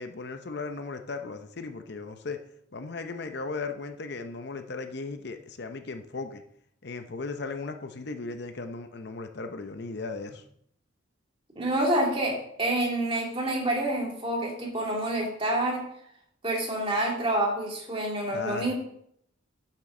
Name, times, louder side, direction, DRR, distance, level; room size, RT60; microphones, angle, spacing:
voice 1, 0.0-2.4 2.7-6.4 6.8-10.4 18.3-18.7, left 3 dB, 55° left, 7 dB, 0.7 m, -36 dB
voice 2, 11.6-15.8 16.4-18.7, right 1 dB, 25° right, -1 dB, 2.3 m, -27 dB
11.0 x 7.4 x 3.7 m, 0.70 s
head